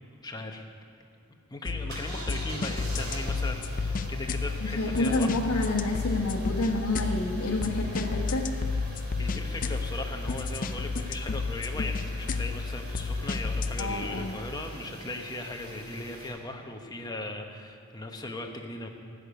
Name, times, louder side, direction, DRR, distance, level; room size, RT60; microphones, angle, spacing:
voice 1, 0.2-0.7 1.5-5.4 9.2-18.9, left 2 dB, 20° left, 3 dB, 1.0 m, -38 dB
sound 1, 1.7-13.8, left 4 dB, 40° left, 0.5 m, -32 dB
sound 2, 1.9-16.3, right 1 dB, 50° right, 3.6 m, -44 dB
voice 2, 4.6-8.5 13.8-14.4, left 2 dB, 80° left, -3 dB, 1.3 m, -29 dB
15.5 x 6.6 x 9.4 m, 2.5 s
head